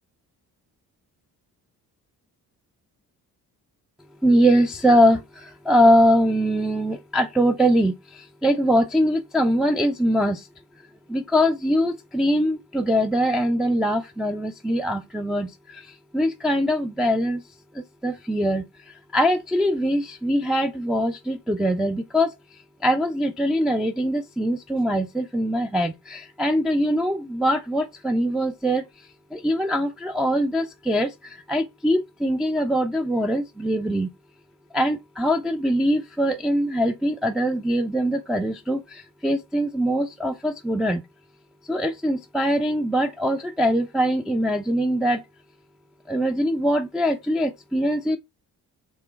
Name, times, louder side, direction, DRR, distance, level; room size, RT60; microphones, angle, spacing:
voice 1, 4.2-10.5 11.1-17.4 17.7-22.3 22.8-28.8 29.3-34.1 34.7-41.0 41.7-45.2 46.1-48.2, equal, ahead, 0.4 m, -22 dB
3.1 x 2.9 x 4.5 m
hypercardioid pair, 50°, 43 cm